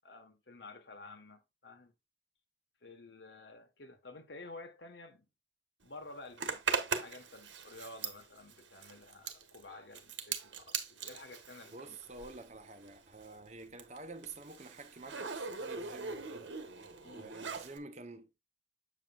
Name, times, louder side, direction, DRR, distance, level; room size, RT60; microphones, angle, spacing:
voice 1, 0.0-1.9 2.8-5.3 5.8-6.6 7.0-12.0 17.0-17.3, left 2 dB, 65° left, 1.4 m, -51 dB
Zipper (clothing), 6.4-12.6 12.8-17.8, right 5 dB, 80° right, 1.3 m, -40 dB
voice 2, 11.7-16.6 17.1-18.3, right 3 dB, 35° right, 0.9 m, -49 dB
7.5 x 7.5 x 2.4 m
head